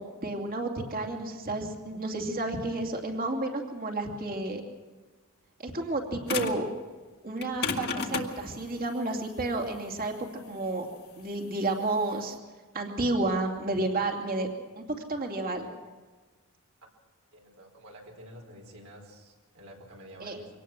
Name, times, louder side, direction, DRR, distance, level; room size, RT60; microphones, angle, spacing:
voice 1, 0.0-4.6 5.6-6.7 7.2-10.1 10.5-10.9 11.2-12.3 12.7-14.5 14.8-14.9 15.1-15.7 20.2-20.4, right 2 dB, 40° right, 3 dB, 2.6 m, -31 dB
sound 1, 6.3-6.7 7.4-12.3, left 4 dB, 50° left, 1.8 m, -33 dB
voice 2, 17.3-20.5, right 1 dB, 75° right, 1 dB, 4.7 m, -49 dB
24.0 x 18.5 x 6.1 m, 1.3 s
head